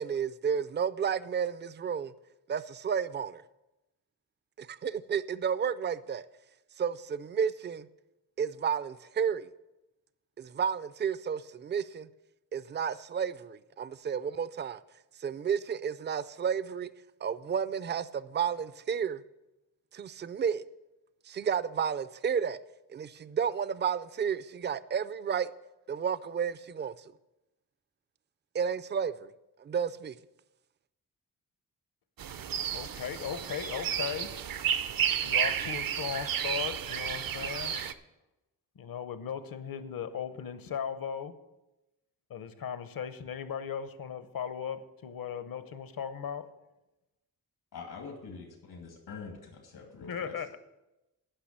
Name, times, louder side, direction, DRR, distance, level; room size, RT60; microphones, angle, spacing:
voice 1, 0.0-2.1 2.5-3.4 4.6-6.2 6.8-7.9 8.4-9.5 10.4-12.1 12.5-14.8 15.2-16.9 17.2-19.2 19.9-20.6 21.3-22.6 22.9-25.5 25.9-26.9 28.5-29.3 29.6-30.2, right 7 dB, 30° right, 0.4 m, -32 dB
sound 1, 32.2-37.9, right 9 dB, 65° right, 0.6 m, -32 dB
voice 2, 32.7-34.3 35.2-37.8 38.8-41.3 42.3-46.5 50.0-50.6, left 7 dB, 65° left, 0.9 m, -37 dB
voice 3, 47.7-50.3, left 5 dB, 90° left, 2.2 m, -44 dB
10.0 x 5.8 x 8.6 m
wide cardioid pair, 110°, 37 cm